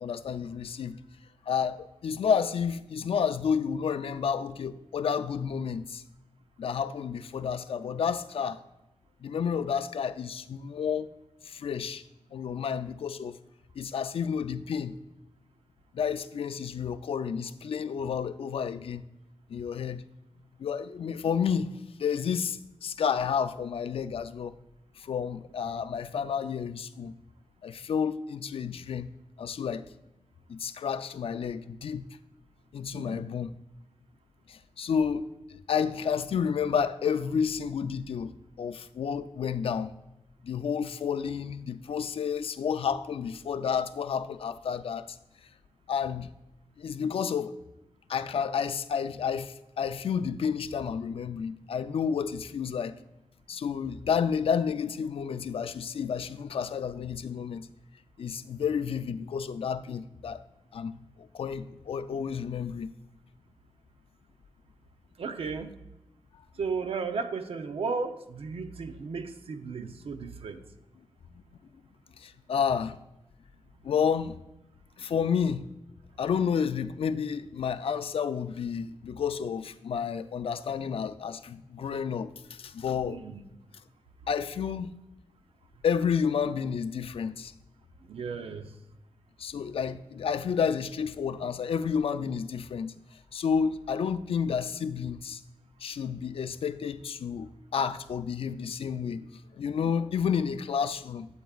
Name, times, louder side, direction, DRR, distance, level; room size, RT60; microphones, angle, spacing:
voice 1, 0.0-1.0 1.5-6.0 6.6-8.6 9.2-11.1 11.4-12.0 12.3-13.4 13.8-15.0 15.9-19.0 19.5-20.0 20.6-21.7 22.0-24.5 25.0-27.1 27.6-29.1 29.4-29.8 30.5-32.1 32.7-33.5 34.5-38.3 38.6-39.9 40.4-45.2 45.9-46.3 46.8-47.6 48.1-52.9 53.5-57.7 58.2-60.4 60.7-62.9 72.2-73.0 73.8-74.4 75.0-75.7 76.2-83.2 84.3-84.9 85.8-87.5 89.4-92.9 93.3-95.4 95.8-99.3 99.5-101.3, left 7 dB, 80° left, 0.4 m, -30 dB
voice 2, 32.9-33.2 65.2-65.8 66.6-70.6 83.0-83.4 88.1-88.7, right 4 dB, 90° right, 0.7 m, -34 dB
12.0 x 8.0 x 2.4 m
wide cardioid pair, 150°, 10 cm